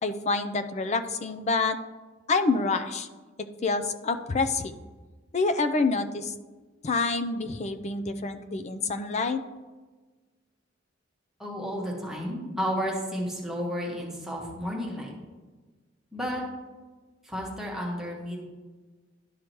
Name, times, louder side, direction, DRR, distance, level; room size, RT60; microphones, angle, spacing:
voice 1, 0.0-1.8 2.3-3.1 3.6-4.7 5.3-6.3 6.8-9.4, left 3 dB, 35° left, 8 dB, 0.5 m, -27 dB
voice 2, 11.4-15.1 16.1-16.4 17.2-18.4, equal, ahead, -3 dB, 1.3 m, -32 dB
11.5 x 4.9 x 3.0 m, 1.3 s
head